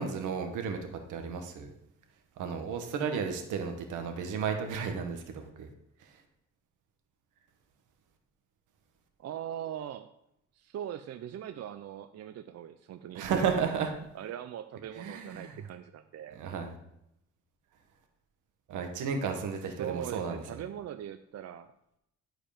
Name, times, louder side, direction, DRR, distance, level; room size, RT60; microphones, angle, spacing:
voice 1, 0.0-1.7 2.4-5.7 6.0-6.2 13.1-13.9 14.9-15.7 16.3-16.8 18.7-20.6, right 6 dB, 85° right, 5 dB, 1.5 m, -33 dB
voice 2, 9.2-10.1 10.6-13.4 14.1-16.4 19.8-21.7, right 10 dB, 55° right, 9 dB, 0.6 m, -41 dB
11.5 x 5.0 x 5.1 m, 0.79 s
cardioid pair, 90°, 30 cm